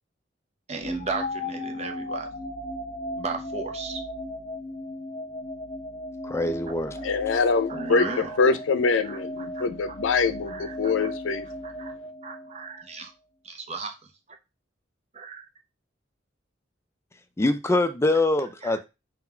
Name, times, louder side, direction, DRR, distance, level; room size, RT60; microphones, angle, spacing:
voice 1, 0.7-2.3 3.2-4.0 7.0-8.5 9.0-9.2 9.5-9.7 10.5-11.1 11.6-11.9 12.2-13.1 13.4-14.1 15.1-15.5 18.6-18.8, right 4 dB, 35° right, 0.7 m, -36 dB
sound 1, 0.8-12.9, left 1 dB, 40° left, 0.8 m, -36 dB
voice 2, 6.2-7.0 17.4-18.8, left 2 dB, 15° left, 0.4 m, -24 dB
voice 3, 7.0-11.5, left 4 dB, 85° left, 0.5 m, -24 dB
3.8 x 2.4 x 4.3 m
head